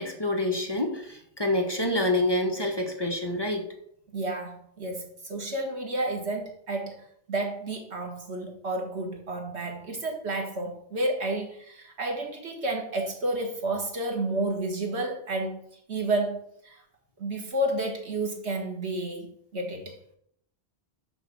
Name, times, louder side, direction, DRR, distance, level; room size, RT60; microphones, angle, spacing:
voice 1, 0.0-3.6, left 1 dB, 25° left, 1 dB, 1.3 m, -27 dB
voice 2, 4.1-7.0 7.3-15.6 15.9-16.8 17.2-20.0, right 2 dB, 80° right, 2 dB, 1.9 m, -31 dB
6.5 x 6.3 x 6.3 m, 0.70 s
omnidirectional pair, 1.1 m